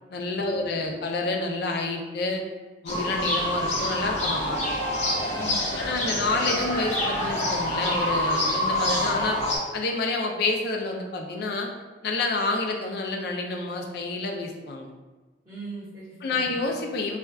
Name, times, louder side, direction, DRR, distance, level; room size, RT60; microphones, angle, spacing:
voice 1, 0.1-2.4 2.8-4.7 5.7-9.4 9.7-11.7 12.0-14.9 16.2-17.2, left 3 dB, 60° left, 2 dB, 0.4 m, -28 dB
sound 1, 2.9-9.6, left 1 dB, 40° left, 0.8 m, -26 dB
voice 2, 5.3-6.2 15.4-16.6, right 2 dB, 20° right, -16 dB, 1.1 m, -41 dB
4.2 x 2.3 x 2.3 m, 1.3 s
head